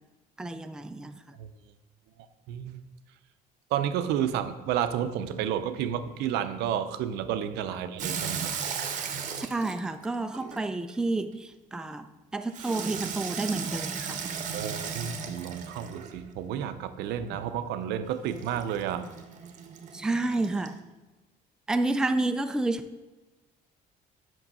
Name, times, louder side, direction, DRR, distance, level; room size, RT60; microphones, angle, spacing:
voice 1, 0.4-1.2 9.3-14.3 19.9-20.8 21.7-22.8, right 2 dB, 5° right, 8 dB, 0.3 m, -30 dB
voice 2, 2.5-2.8 3.7-8.5 14.5-19.1, right 9 dB, 85° right, 10 dB, 0.5 m, -31 dB
Water tap faucet / Sink (filling or washing), 8.0-11.0 12.5-16.3 18.3-20.8, right 6 dB, 50° right, 0.8 m, -36 dB
6.0 x 5.4 x 5.3 m, 1.2 s
cardioid pair, 110°, 17 cm